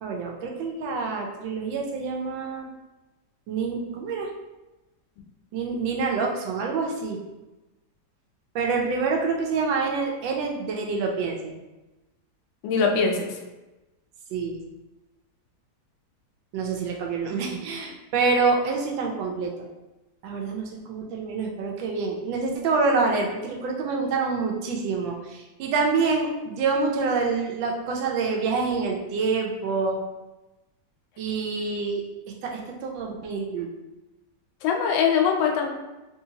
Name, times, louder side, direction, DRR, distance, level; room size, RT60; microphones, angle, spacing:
voice 1, 0.0-2.7 3.5-4.3 5.5-7.2 8.5-11.5 14.3-14.5 16.5-19.5 20.2-30.0 31.2-32.0 32.4-33.7, right 4 dB, 90° right, 1 dB, 1.3 m, -26 dB
voice 2, 12.6-13.3 34.6-35.7, left 6 dB, 85° left, 2 dB, 1.3 m, -22 dB
3.1 x 2.8 x 2.7 m, 1.1 s
omnidirectional pair, 2.0 m